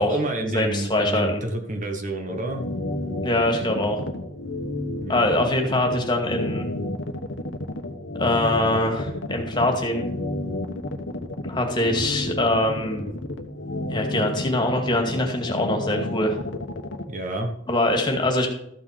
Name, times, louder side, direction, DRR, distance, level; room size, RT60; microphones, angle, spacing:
voice 1, 0.0-2.7 5.0-5.3 17.1-17.5, right 1 dB, 45° right, 5 dB, 1.3 m, -29 dB
voice 2, 0.5-1.4 3.2-4.0 5.1-6.7 8.2-10.0 11.5-13.1 13.9-16.4 17.7-18.5, left 1 dB, 25° left, 3 dB, 2.2 m, -23 dB
sound 1, 2.3-17.0, left 1 dB, 80° left, 1.2 m, -31 dB
13.5 x 6.0 x 5.1 m, 0.74 s
head